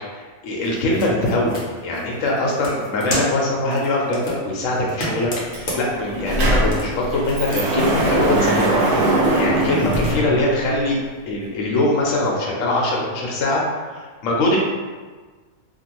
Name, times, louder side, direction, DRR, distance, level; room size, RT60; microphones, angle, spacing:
voice 1, 0.1-11.0 11.3-13.6 13.9-14.6, left 2 dB, 70° left, -3 dB, 0.9 m, -22 dB
sound 1, 0.6-10.2, equal, 50° left, 0.8 m, -34 dB
Sliding door, 5.5-5.6 5.9-10.9, right 1 dB, 65° right, 0.7 m, -21 dB
2.5 x 2.5 x 2.9 m, 1.4 s
omnidirectional pair, 1.5 m